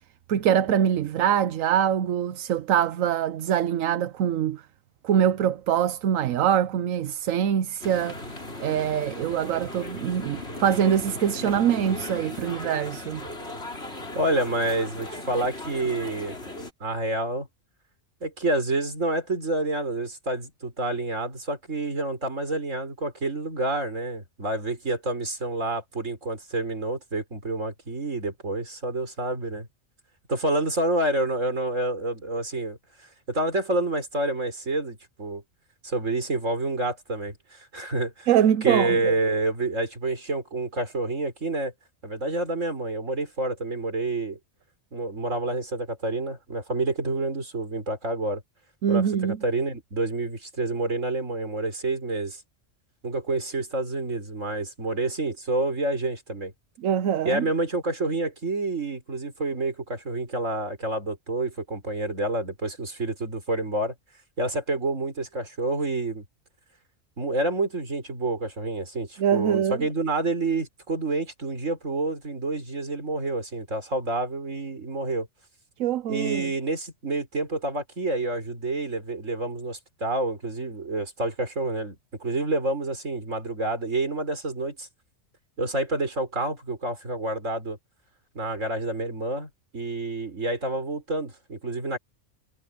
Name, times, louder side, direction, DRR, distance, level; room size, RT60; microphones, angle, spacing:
voice 1, 0.3-4.6 5.0-13.3 38.3-39.1 48.8-49.4 56.8-57.4 69.2-69.8 75.8-76.5, right 9 dB, 90° right, 1.1 m, -24 dB
sound 1, 7.8-16.7, left 2 dB, 50° left, 5.0 m, -37 dB
voice 2, 14.1-16.3 16.8-17.5 18.2-29.7 30.3-32.8 33.3-35.4 35.8-38.3 38.6-41.7 42.0-44.4 44.9-48.4 48.9-52.4 53.0-56.5 57.2-63.9 64.4-66.2 67.2-75.3 76.1-84.9 85.6-87.8 88.3-92.0, right 2 dB, 75° right, 5.1 m, -28 dB
omnidirectional pair, 1.3 m